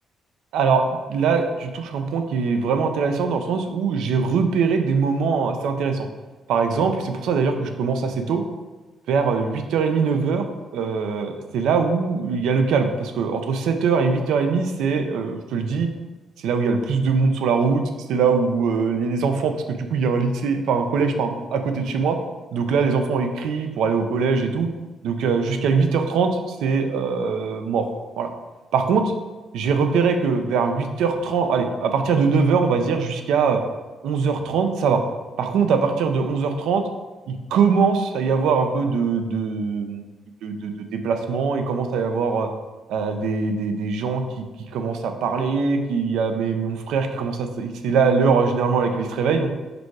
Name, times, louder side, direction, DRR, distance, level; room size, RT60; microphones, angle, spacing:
voice 1, 0.5-6.1 6.5-8.4 9.1-10.5 10.7-15.9 16.4-17.8 18.1-22.2 22.5-24.7 25.0-26.3 26.6-27.9 28.2-28.3 28.7-29.1 29.5-33.6 34.0-35.0 35.4-36.8 37.3-40.0 40.4-42.5 42.9-44.4 44.7-49.5, right 5 dB, 90° right, 6 dB, 0.6 m, -22 dB
5.1 x 4.6 x 4.7 m, 1.2 s
cardioid pair, 145°, 0 cm